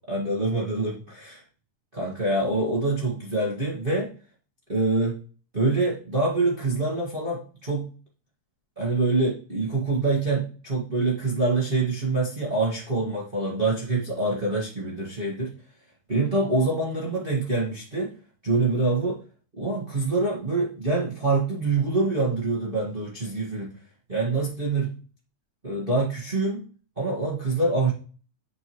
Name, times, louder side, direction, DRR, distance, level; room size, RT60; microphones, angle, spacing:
voice 1, 0.1-1.4 1.9-4.1 4.7-5.2 5.5-7.9 8.8-15.5 16.1-18.1 18.4-19.2 19.5-23.7 24.1-24.9 25.6-26.6 27.0-27.9, right 3 dB, 80° right, -4 dB, 0.4 m, -25 dB
7.8 x 4.6 x 3.0 m, 0.39 s
omnidirectional pair, 3.8 m